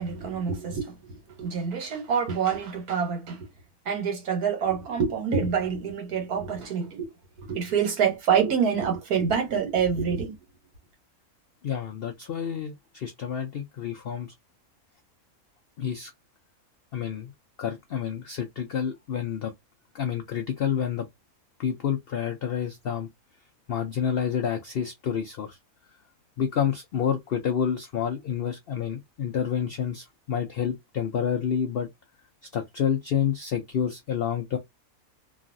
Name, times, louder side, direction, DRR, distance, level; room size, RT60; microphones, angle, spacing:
voice 1, 0.0-3.5 3.9-7.1 7.4-10.3, right 7 dB, 80° right, 1.6 m, -26 dB
voice 2, 11.6-14.3 15.8-16.1 16.9-17.3 17.6-19.5 19.9-21.1 21.6-23.1 23.7-25.6 26.4-31.9 32.5-34.6, left 8 dB, 85° left, 0.5 m, -29 dB
3.0 x 2.4 x 2.6 m
omnidirectional pair, 1.6 m